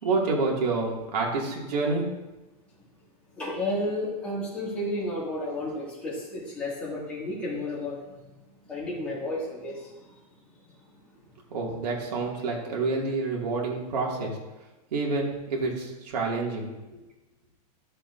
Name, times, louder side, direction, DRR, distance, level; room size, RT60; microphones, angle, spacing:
voice 1, 0.0-2.0 11.5-14.3 14.9-16.7, right 3 dB, 85° right, -2 dB, 2.4 m, -28 dB
voice 2, 3.4-8.1 8.7-10.2 10.7-11.2, left 1 dB, 5° left, -8 dB, 2.3 m, -32 dB
12.5 x 6.7 x 2.7 m, 1.1 s
supercardioid pair, 175°, 20 cm